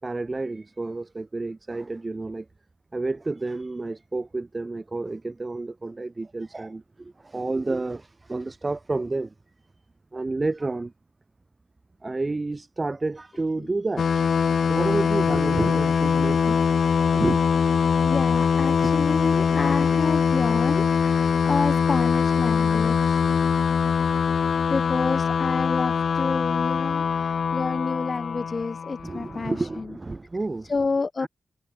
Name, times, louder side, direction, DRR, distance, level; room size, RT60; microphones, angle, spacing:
voice 1, 0.0-2.5 2.9-9.3 10.1-10.9 12.0-16.6 17.1-17.4 18.8-18.9 27.5-27.6 29.0-30.7 31.2-31.3, right 3 dB, 35° right, 7.7 m, -30 dB
sound 1, 14.0-29.4, left 6 dB, 70° left, 0.7 m, -22 dB
voice 2, 18.0-23.2 24.7-29.9 30.7-31.3, left 4 dB, 45° left, 2.9 m, -29 dB
cardioid pair, 50°, 0 cm